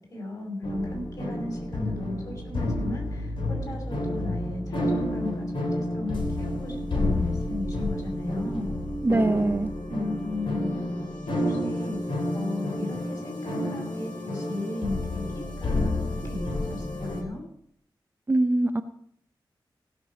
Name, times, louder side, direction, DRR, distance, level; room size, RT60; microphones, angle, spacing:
voice 1, 0.1-5.5 5.7-8.7 9.9-10.8 11.5-12.0 12.3-17.4, left 2 dB, 45° left, 1 dB, 5.2 m, -35 dB
sound 1, 0.6-17.2, left 1 dB, 85° left, 3.0 m, -30 dB
voice 2, 9.0-9.7 18.3-18.8, right 2 dB, 25° right, 8 dB, 0.6 m, -23 dB
16.5 x 6.7 x 6.3 m, 0.66 s
wide cardioid pair, 135°, 8 cm